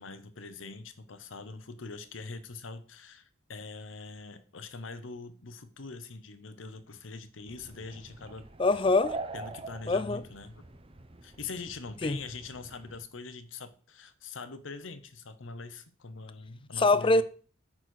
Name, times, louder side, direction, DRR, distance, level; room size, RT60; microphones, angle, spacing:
voice 1, 0.0-8.5 9.3-10.6 11.2-17.2, left 4 dB, 80° left, 0.9 m, -43 dB
Asp attacks riverside and underwater, 7.5-13.0, right 3 dB, 30° right, 0.8 m, -44 dB
voice 2, 8.6-9.2 9.9-10.2 12.0-12.2 16.8-17.2, left 2 dB, 25° left, 0.5 m, -24 dB
9.1 x 4.3 x 6.4 m
head